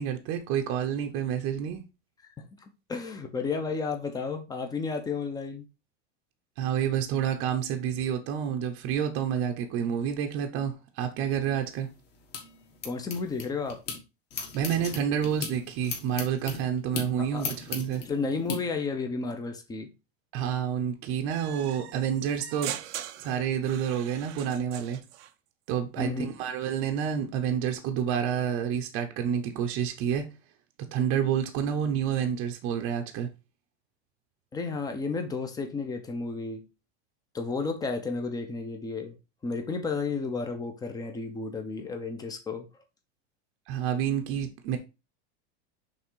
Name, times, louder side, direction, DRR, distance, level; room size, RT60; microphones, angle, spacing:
voice 1, 0.0-1.8 6.6-11.9 14.5-18.0 20.3-22.8 23.2-25.0 25.7-30.3 30.9-33.3 43.7-44.8, right 8 dB, 40° right, 0.8 m, -29 dB
voice 2, 2.9-5.6 12.8-13.8 17.3-17.5 18.1-19.9 26.0-26.3 34.5-36.7 37.3-39.2 39.4-42.7, left 4 dB, 10° left, 0.8 m, -32 dB
sound 1, 11.6-14.0 14.3-18.6, left 5 dB, 30° left, 1.6 m, -38 dB
sound 2, 21.3-25.3, right 12 dB, 80° right, 0.8 m, -41 dB
5.9 x 3.8 x 4.6 m
supercardioid pair, 165°, 33 cm